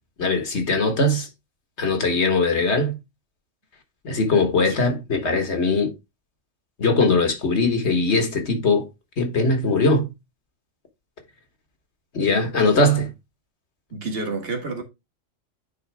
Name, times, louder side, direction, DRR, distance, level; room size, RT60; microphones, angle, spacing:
voice 1, 0.2-1.3 1.8-3.0 4.0-5.9 6.8-8.9 9.2-10.1 12.1-13.1, left 2 dB, 60° left, 1.7 m, -20 dB
voice 2, 13.9-14.8, right 3 dB, 50° right, 1.7 m, -30 dB
9.5 x 3.9 x 3.4 m
omnidirectional pair, 1.3 m